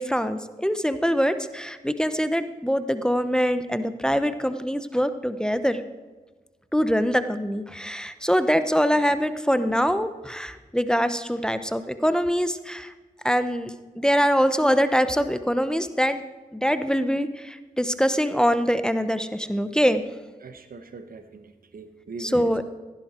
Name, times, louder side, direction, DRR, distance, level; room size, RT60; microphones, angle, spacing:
voice 1, 0.0-5.8 6.7-12.9 13.2-16.2 16.5-20.0 22.2-22.6, equal, 5° left, 11 dB, 0.9 m, -24 dB
voice 2, 20.4-22.6, right 4 dB, 70° right, 9 dB, 1.2 m, -41 dB
16.0 x 11.0 x 4.4 m, 1.3 s
cardioid pair, 45°, 15 cm